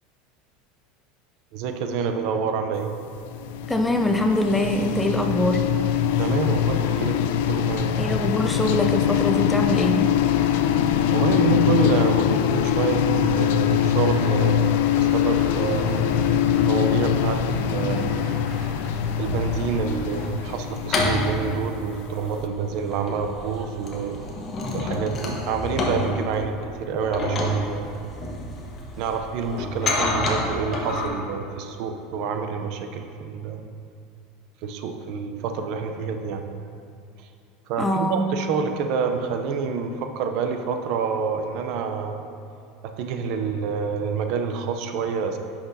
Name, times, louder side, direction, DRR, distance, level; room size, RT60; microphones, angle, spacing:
voice 1, 1.5-2.9 6.2-8.0 11.1-16.0 16.6-18.2 19.2-24.1 24.7-28.0 29.0-33.6 34.6-36.5 37.7-42.2 43.0-45.4, right 6 dB, 55° right, 6 dB, 0.6 m, -27 dB
sound 1, 3.1-22.1, left 9 dB, 75° left, 0.3 m, -23 dB
voice 2, 3.7-5.6 8.0-10.0 37.8-38.2, left 1 dB, 5° left, 4 dB, 0.4 m, -23 dB
sound 2, 14.1-14.6 14.9-20.3, right 1 dB, 20° right, 1.0 m, -41 dB
sound 3, 16.0-18.1 18.6-31.1, left 1 dB, 30° left, 1.0 m, -30 dB
9.9 x 5.8 x 2.7 m, 2.5 s
supercardioid pair, 140°, 0 cm